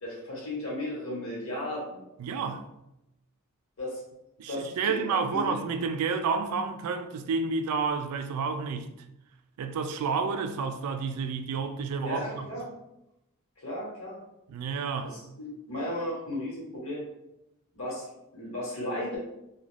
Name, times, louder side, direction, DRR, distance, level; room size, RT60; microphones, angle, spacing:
voice 1, 0.0-2.1 3.8-4.0 4.5-5.5 12.0-12.7 13.6-14.2 15.0-17.0 17.7-18.0 18.3-19.2, left 1 dB, 60° left, 1.1 m, -35 dB
voice 2, 2.2-2.7 4.4-8.9 9.6-12.5 14.5-15.2, right 5 dB, 90° right, 0.3 m, -30 dB
2.4 x 2.2 x 3.2 m
head